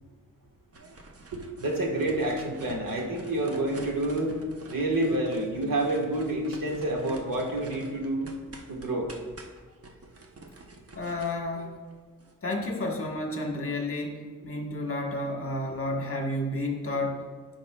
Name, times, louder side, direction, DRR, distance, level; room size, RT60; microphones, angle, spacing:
sound 1, 0.7-12.3, right 2 dB, 45° right, 0.8 m, -47 dB
voice 1, 1.3-4.3 4.7-8.3 8.7-9.1, right 1 dB, 75° right, 0 dB, 1.4 m, -28 dB
voice 2, 10.9-11.8 12.4-17.2, left 1 dB, 40° left, 1 dB, 1.2 m, -31 dB
15.5 x 5.1 x 2.3 m, 1.4 s
wide cardioid pair, 130°, 34 cm